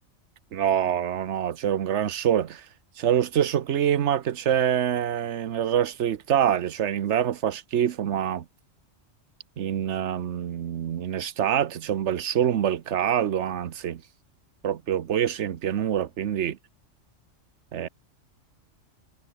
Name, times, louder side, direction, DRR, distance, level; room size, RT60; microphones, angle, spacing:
voice 1, 0.5-2.7 3.0-8.4 9.6-14.0 14.6-16.6 17.7-17.9, right 9 dB, 65° right, 1.2 m, -25 dB
omnidirectional pair, 1.3 m